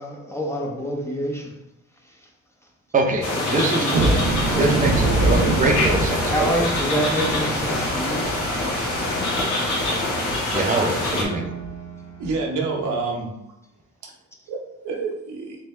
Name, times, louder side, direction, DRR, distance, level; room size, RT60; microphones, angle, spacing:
voice 1, 0.0-1.6 1.9-2.3 3.3-5.4 6.3-8.3, equal, 10° left, 0 dB, 0.7 m, -28 dB
voice 2, 2.9-3.9 4.6-6.3 10.5-11.4, right 2 dB, 25° right, 2 dB, 0.7 m, -23 dB
sound 1, 3.2-11.2, left 2 dB, 75° left, 1.2 m, -25 dB
sound 2, 3.9-10.6 11.0-11.1 11.6-11.7 12.2-12.4, right 2 dB, 60° right, 0.6 m, -25 dB
Piano, 5.2-13.2, right 1 dB, 45° left, 0.9 m, -39 dB
voice 3, 12.2-13.3 14.5-15.6, right 3 dB, 80° right, 0 dB, 1.0 m, -27 dB
3.4 x 3.4 x 3.2 m, 0.87 s
cardioid pair, 90°, 30 cm